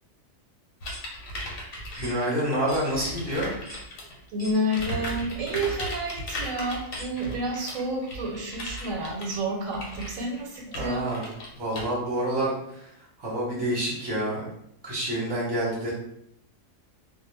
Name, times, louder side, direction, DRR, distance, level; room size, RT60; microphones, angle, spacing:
sound 1, 0.8-4.2 4.6-11.8, equal, 80° left, 1.1 m, -37 dB
sound 2, 0.9-1.1 1.9-2.2 2.7-2.9 3.7-3.9 4.4-4.6 5.4-5.5 6.9-7.1, equal, 10° left, 0.8 m, -43 dB
voice 1, 2.0-3.5 10.7-11.2 11.5-12.9 13.2-14.5 14.8-15.9, right 1 dB, 25° right, -6 dB, 0.8 m, -28 dB
voice 2, 4.3-11.1, right 1 dB, 80° right, 1 dB, 1.0 m, -30 dB
2.2 x 2.1 x 3.1 m, 0.75 s
omnidirectional pair, 1.4 m